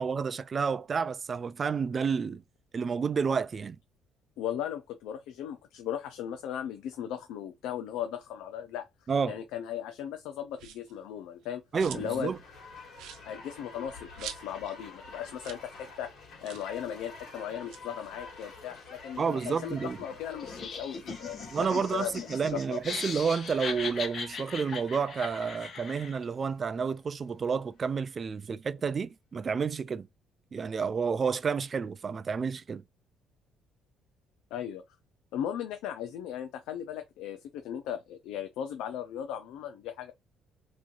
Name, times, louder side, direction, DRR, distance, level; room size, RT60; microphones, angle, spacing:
voice 1, 0.0-2.4 2.7-3.8 9.1-9.4 11.7-12.4 19.2-20.0 21.5-30.1 30.5-32.8, right 6 dB, 30° right, 0.3 m, -30 dB
voice 2, 4.4-8.9 9.2-11.6 11.9-12.3 13.2-16.1 16.4-22.8 34.5-34.8 35.3-40.1, left 9 dB, 90° left, 0.5 m, -37 dB
sound 1, 10.5-11.0 11.4-12.2 12.5-12.6 12.9-14.8 15.1-15.2 15.4-15.7 15.9-16.0 16.4-16.7 17.5-19.2 19.6-21.1, right 9 dB, 80° right, 0.7 m, -47 dB
sound 2, 11.7-26.8 27.4-27.5, left 3 dB, 55° left, 1.7 m, -49 dB
Laughter, 20.4-26.2, left 5 dB, 40° left, 1.0 m, -39 dB
3.0 x 2.6 x 3.8 m
cardioid pair, 155°, 0 cm